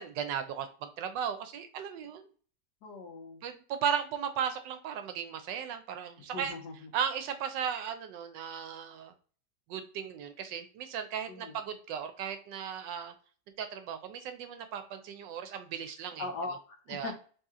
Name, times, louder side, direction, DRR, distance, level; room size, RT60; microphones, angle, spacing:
voice 1, 0.0-2.3 3.4-6.5 6.9-9.1 9.7-13.1 13.6-16.3 16.9-17.1, right 8 dB, 85° right, 8 dB, 1.3 m, -36 dB
voice 2, 2.8-3.4 6.2-6.9 11.3-11.6 16.2-17.1, left 2 dB, 70° left, 3 dB, 1.4 m, -40 dB
3.6 x 2.8 x 3.6 m, 0.41 s
omnidirectional pair, 1.9 m